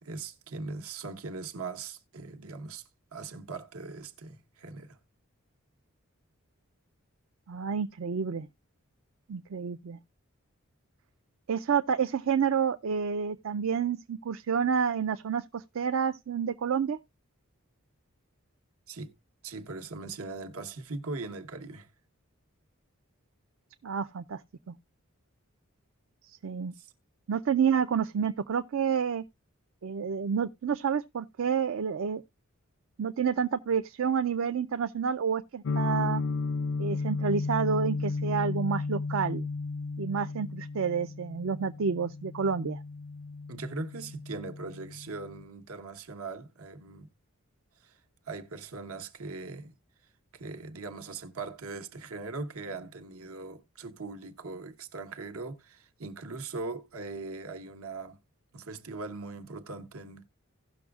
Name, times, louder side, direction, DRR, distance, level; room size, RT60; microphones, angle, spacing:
voice 1, 0.0-2.8 3.1-5.0 18.9-19.1 19.4-21.9 26.7-26.9 43.5-47.1 47.8-48.0 48.3-49.7 50.3-58.2 58.5-60.3, right 3 dB, 85° right, 1.1 m, -40 dB
voice 2, 7.5-8.5 9.3-10.0 11.5-17.0 23.8-24.4 24.7-24.8 26.2-26.7 27.3-29.2 29.8-32.2 33.0-36.2 36.8-39.5 40.0-42.8, right 6 dB, 70° right, 0.4 m, -29 dB
sound 1, 35.6-45.4, left 3 dB, 60° left, 0.4 m, -34 dB
17.0 x 6.2 x 2.3 m
head